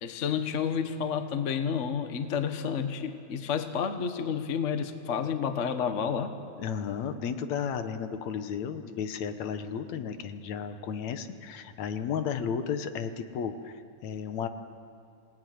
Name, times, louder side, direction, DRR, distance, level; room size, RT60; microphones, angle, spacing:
voice 1, 0.0-6.4, left 7 dB, 50° left, 8 dB, 0.8 m, -30 dB
voice 2, 6.6-14.5, left 7 dB, 75° left, 9 dB, 2.4 m, -33 dB
26.5 x 18.5 x 9.5 m, 2.5 s
omnidirectional pair, 3.3 m